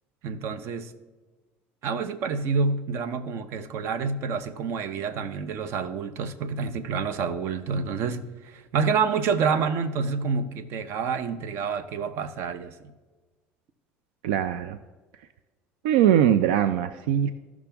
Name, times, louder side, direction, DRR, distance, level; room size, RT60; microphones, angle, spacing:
voice 1, 0.2-0.9 1.8-12.7, right 5 dB, 60° right, 0.7 m, -28 dB
voice 2, 14.2-14.8 15.8-17.3, right 10 dB, 90° right, 0.4 m, -21 dB
14.5 x 6.0 x 3.4 m
supercardioid pair, 105°, 5 cm